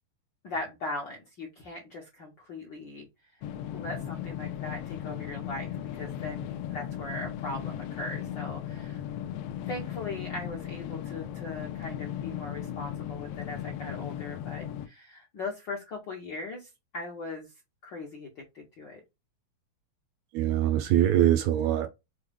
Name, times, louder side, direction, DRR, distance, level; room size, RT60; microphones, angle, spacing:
voice 1, 0.4-3.1 3.7-9.0 9.7-17.5 17.8-19.0, left 2 dB, 65° left, 1.1 m, -39 dB
sound 1, 3.4-14.9, left 10 dB, 85° left, 1.4 m, -37 dB
voice 2, 20.3-21.9, right 11 dB, 80° right, 1.6 m, -23 dB
6.2 x 2.3 x 3.4 m
omnidirectional pair, 3.4 m